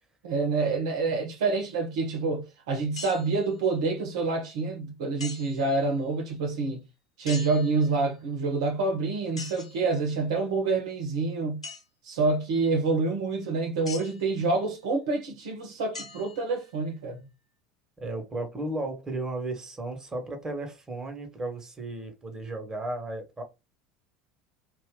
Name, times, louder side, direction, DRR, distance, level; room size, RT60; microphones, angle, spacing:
voice 1, 0.2-6.8 7.2-11.6 12.0-17.2, right 3 dB, 70° right, 0.9 m, -27 dB
sound 1, 2.9-3.5 5.2-5.7 7.2-8.1 9.4-9.9 11.6-11.8 13.8-14.3 15.9-16.8, left 3 dB, 90° left, 0.8 m, -42 dB
voice 2, 18.0-23.4, right 2 dB, 20° right, 1.3 m, -34 dB
2.5 x 2.5 x 3.8 m
figure-of-eight pair, 70°, 3 cm